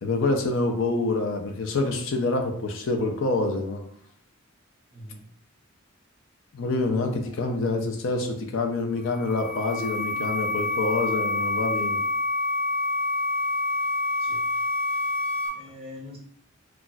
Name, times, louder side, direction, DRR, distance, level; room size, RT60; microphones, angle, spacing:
voice 1, 0.0-3.8 6.5-12.0, left 3 dB, 65° left, 3 dB, 0.5 m, -26 dB
voice 2, 4.9-5.2 7.3-7.7 14.2-14.5 15.5-16.2, left 2 dB, 25° right, -3 dB, 0.9 m, -44 dB
sound 1, 9.0-15.5, left 2 dB, 10° left, 1.0 m, -27 dB
2.3 x 2.3 x 3.9 m, 0.65 s
head